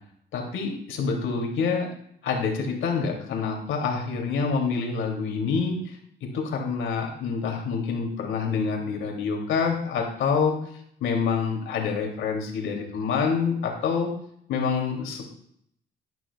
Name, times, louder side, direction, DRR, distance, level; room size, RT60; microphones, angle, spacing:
voice 1, 0.3-1.9 2.2-6.0 6.3-10.5 11.0-14.1 14.5-15.2, left 5 dB, 80° left, 1 dB, 2.7 m, -27 dB
12.5 x 12.0 x 2.3 m, 0.68 s
cardioid pair, 90°, 20 cm